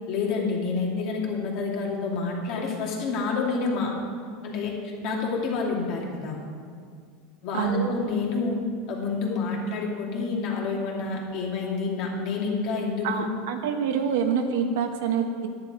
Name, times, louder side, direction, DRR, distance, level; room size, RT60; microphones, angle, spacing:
voice 1, 0.1-3.9 4.4-6.4 7.4-8.6 8.9-13.3, left 4 dB, 50° left, -2 dB, 2.5 m, -28 dB
voice 2, 7.5-7.9 13.0-15.5, right 7 dB, 80° right, 5 dB, 1.2 m, -26 dB
11.0 x 10.5 x 4.9 m, 2.1 s
supercardioid pair, 150°, 0 cm